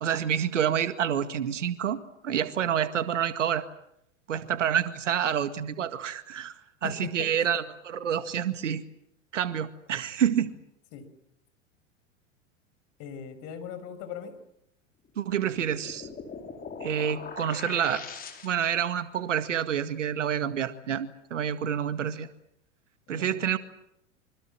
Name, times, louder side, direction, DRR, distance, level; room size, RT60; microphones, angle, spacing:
voice 1, 0.0-3.7 4.3-8.8 9.3-10.6 15.2-16.1 16.8-18.0 18.4-22.3 23.1-23.6, right 9 dB, 65° right, 12 dB, 2.0 m, -28 dB
voice 2, 13.0-14.3 23.1-23.4, left 8 dB, 40° left, 10 dB, 5.9 m, -39 dB
sound 1, 15.2-18.9, left 5 dB, 20° left, 5.0 m, -41 dB
26.0 x 25.5 x 7.6 m, 0.77 s
figure-of-eight pair, 90°, 39 cm